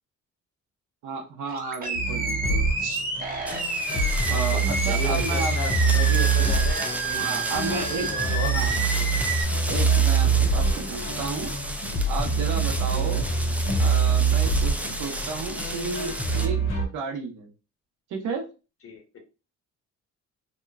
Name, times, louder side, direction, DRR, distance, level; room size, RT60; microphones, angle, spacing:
voice 1, 1.0-3.0 4.3-5.6 7.1-8.1 8.5-8.7 9.7-11.5 12.1-13.2 13.8-16.6 16.9-17.5 18.1-18.4, right 4 dB, 80° right, 2 dB, 0.8 m, -32 dB
Animal, 1.4-9.4, right 3 dB, 30° right, 0.8 m, -30 dB
sound 1, 2.0-16.9, right 4 dB, 70° left, 1.4 m, -25 dB
sound 2, 3.5-16.5, right 1 dB, 5° right, 0.3 m, -34 dB
voice 2, 4.3-8.5 8.9-9.1 18.8-19.2, left 4 dB, 50° left, 3 dB, 0.9 m, -35 dB
2.9 x 2.1 x 2.3 m, 0.32 s
cardioid pair, 90°, 30 cm